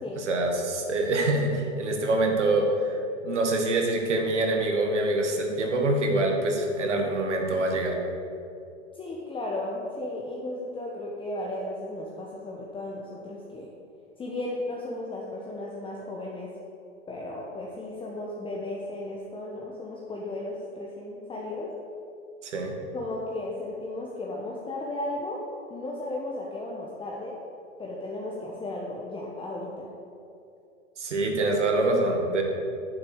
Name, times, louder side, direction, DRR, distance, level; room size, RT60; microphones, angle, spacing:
voice 1, 0.2-3.0 3.2-8.0 22.4-22.8 31.0-32.4, right 2 dB, 70° right, 2 dB, 2.1 m, -25 dB
voice 2, 8.9-13.7 14.2-16.5 17.1-21.7 22.9-25.4 25.7-27.3 27.8-29.9, left 2 dB, 15° left, -3 dB, 1.2 m, -35 dB
9.7 x 7.4 x 6.5 m, 2.6 s
figure-of-eight pair, 105°, 36 cm